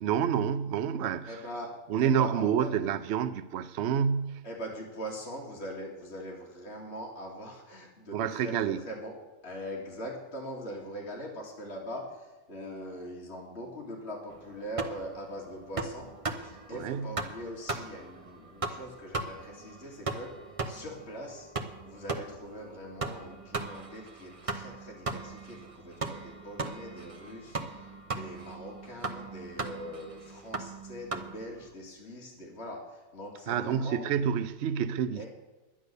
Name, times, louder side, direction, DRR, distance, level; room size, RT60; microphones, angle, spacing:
voice 1, 0.0-1.4 1.9-4.4 8.1-8.8 16.7-17.1 33.5-35.3, right 8 dB, 80° right, 0.6 m, -28 dB
voice 2, 1.3-1.7 2.0-2.7 4.4-8.5 8.9-9.1 9.4-20.3 20.7-21.5 21.8-34.0 35.1-35.3, equal, 40° left, 2.4 m, -42 dB
sound 1, 14.3-31.7, right 3 dB, 30° right, 0.6 m, -39 dB
11.0 x 10.0 x 6.7 m
omnidirectional pair, 1.8 m